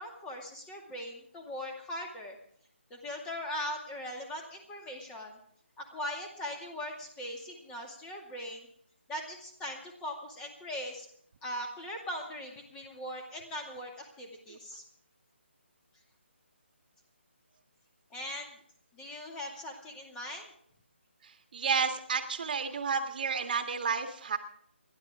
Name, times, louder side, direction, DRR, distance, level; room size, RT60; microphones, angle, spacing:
voice 1, 0.0-2.4 2.9-5.4 5.8-8.7 9.1-11.1 11.4-14.8 18.1-18.5 18.9-20.5, left 1 dB, 10° left, 2 dB, 2.3 m, -40 dB
voice 2, 21.5-24.4, right 6 dB, 45° right, 6 dB, 1.8 m, -31 dB
29.0 x 11.5 x 3.7 m, 0.64 s
figure-of-eight pair, 160°, 7 cm